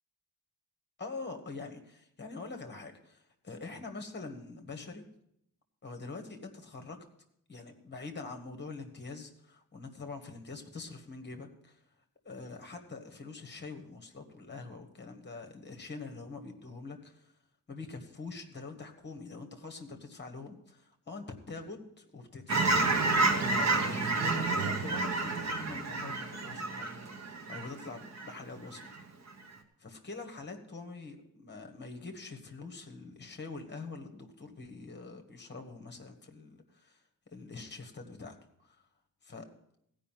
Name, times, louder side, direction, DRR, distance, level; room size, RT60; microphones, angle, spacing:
voice 1, 1.0-5.0 5.8-7.0 7.5-11.8 12.2-17.3 17.7-22.7 23.3-26.9 27.5-28.9 29.8-37.0 37.3-38.8 39.2-39.5, left 3 dB, 30° left, 5 dB, 1.3 m, -44 dB
Fowl / Chirp tweet, 22.5-28.3 28.7-29.0, right 3 dB, 45° right, 1.1 m, -30 dB
16.0 x 5.3 x 7.3 m, 0.75 s
wide cardioid pair, 175°, 37 cm